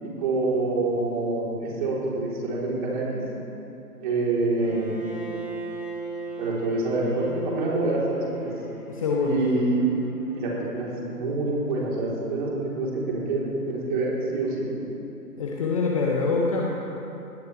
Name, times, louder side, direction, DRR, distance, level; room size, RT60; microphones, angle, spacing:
voice 1, 0.0-3.1 4.0-5.0 6.4-8.5 9.2-9.9 10.3-14.7, right 2 dB, 30° right, -5 dB, 3.8 m, -26 dB
Bowed string instrument, 4.6-10.6, right 3 dB, 5° right, 0.8 m, -39 dB
voice 2, 8.9-9.4 15.4-16.7, left 4 dB, 20° left, -2 dB, 1.0 m, -24 dB
21.0 x 17.5 x 3.4 m, 2.9 s
figure-of-eight pair, 135°, 48 cm